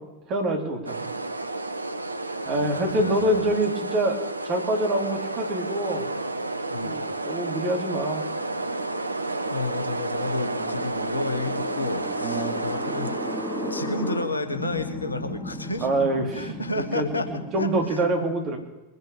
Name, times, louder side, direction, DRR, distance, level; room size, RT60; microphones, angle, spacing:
voice 1, 0.3-1.1 2.4-4.2 4.4-6.1 6.8-8.2 10.5-10.7 12.2-12.6 15.8-18.6, right 1 dB, 35° right, 1 dB, 3.2 m, -26 dB
sound 1, 0.9-14.3, right 2 dB, 80° right, 0.7 m, -31 dB
voice 2, 2.5-3.5 6.7-7.0 9.5-13.2 13.7-15.9 16.3-17.3 17.6-18.0, left 3 dB, 80° left, 8 dB, 1.3 m, -31 dB
sound 2, 7.2-18.0, equal, 5° left, 3.5 m, -37 dB
22.0 x 8.2 x 6.9 m, 1.1 s
figure-of-eight pair, 90°, 0 cm